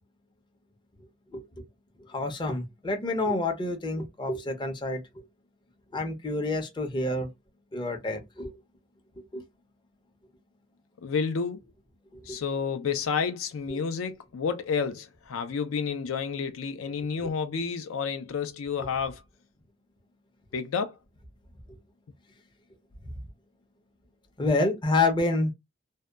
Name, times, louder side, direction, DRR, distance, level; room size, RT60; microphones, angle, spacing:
voice 1, 1.3-1.6 2.1-5.0 5.9-7.3 7.7-8.5 9.3-9.4 12.3-12.4 13.7-13.8 17.2-17.3 24.4-25.5, left 2 dB, 20° left, 0.5 m, -28 dB
voice 2, 11.0-11.6 12.2-19.2 20.5-21.0, left 6 dB, 75° left, 0.4 m, -30 dB
2.6 x 2.1 x 2.2 m
head